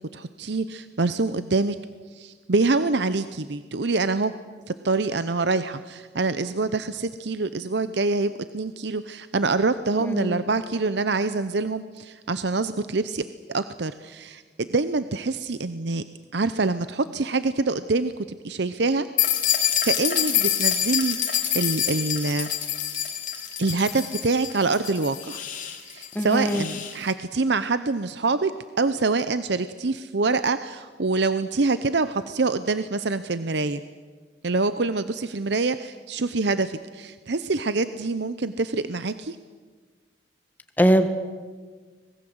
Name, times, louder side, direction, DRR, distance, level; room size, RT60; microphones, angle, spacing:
voice 1, 0.1-1.8 2.1-4.3 4.7-13.2 13.5-16.0 16.3-18.1 18.4-19.1 19.8-22.5 23.6-25.4 25.8-28.5 28.8-33.8 34.4-39.4, right 3 dB, 60° right, 12 dB, 0.7 m, -25 dB
voice 2, 10.0-10.4 26.1-26.6 40.8-41.1, equal, 10° left, 8 dB, 1.6 m, -21 dB
sound 1, 19.2-27.0, left 10 dB, 45° left, 2.7 m, -26 dB
25.0 x 20.5 x 7.9 m, 1.5 s
head